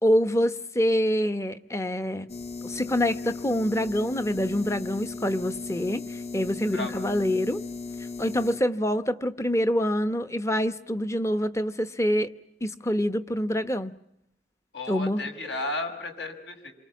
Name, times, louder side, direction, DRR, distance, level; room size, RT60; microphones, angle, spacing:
voice 1, 0.0-2.3 2.6-7.6 8.2-12.3 12.6-14.0 14.9-15.2, equal, 15° left, 0.9 m, -26 dB
sound 1, 2.3-8.6, left 4 dB, 35° left, 1.1 m, -37 dB
voice 2, 14.7-16.7, left 2 dB, 70° left, 5.8 m, -33 dB
28.5 x 24.5 x 7.4 m
head